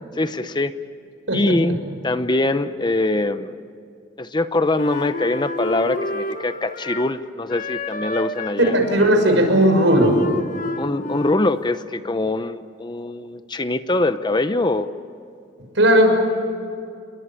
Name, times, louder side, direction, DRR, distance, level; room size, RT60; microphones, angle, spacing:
voice 1, 0.2-0.7 1.3-1.8 2.0-3.6 4.2-8.8 10.8-14.9, left 2 dB, 25° left, 11 dB, 0.8 m, -23 dB
Wind instrument woodwind instrument, 4.8-7.2 7.5-11.6, left 2 dB, 45° left, 1.1 m, -29 dB
voice 2, 8.7-10.2 15.8-16.1, equal, 75° right, 5 dB, 6.1 m, -16 dB
29.0 x 22.5 x 8.9 m, 2.4 s
head